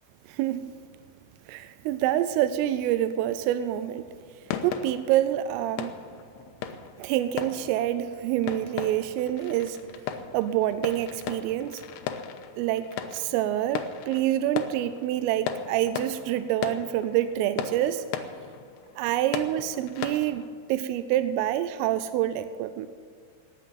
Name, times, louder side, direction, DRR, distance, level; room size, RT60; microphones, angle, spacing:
voice 1, 0.3-0.7 1.5-4.1 4.6-6.0 7.0-9.8 10.3-11.8 12.6-18.0 19.0-22.9, right 12 dB, 90° right, 11 dB, 3.2 m, -27 dB
sound 1, 4.5-20.5, left 8 dB, 85° left, 2.4 m, -37 dB
18.5 x 7.2 x 9.3 m, 2.2 s
omnidirectional pair, 5.7 m